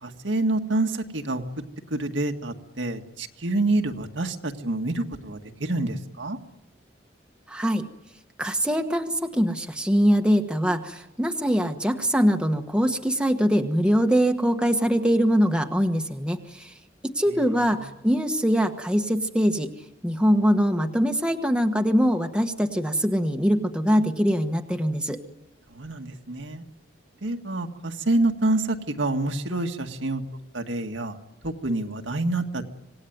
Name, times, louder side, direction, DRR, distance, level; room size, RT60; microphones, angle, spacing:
voice 1, 0.0-1.4 1.9-6.4 17.3-17.8 25.7-26.6 27.2-31.2 31.4-32.6, right 2 dB, 75° right, 4 dB, 1.8 m, -27 dB
voice 2, 7.5-7.8 8.4-16.7 17.0-19.7 20.0-25.2, equal, 5° right, 4 dB, 1.3 m, -23 dB
26.5 x 18.5 x 9.4 m, 0.91 s
head